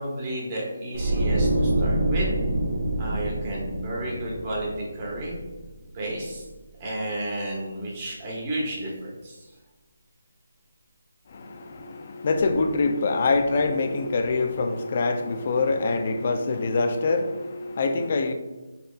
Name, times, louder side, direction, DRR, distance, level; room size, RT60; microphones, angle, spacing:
voice 1, 0.0-2.3 3.0-5.4 5.9-6.4 6.8-9.5, right 1 dB, 25° right, -4 dB, 1.3 m, -32 dB
sound 1, 0.9-6.0 6.3-6.5, right 1 dB, 45° right, 0.9 m, -26 dB
voice 2, 11.3-18.3, left 3 dB, 40° left, 7 dB, 0.4 m, -25 dB
5.4 x 3.9 x 2.3 m, 1.1 s
figure-of-eight pair, 170°, 0 cm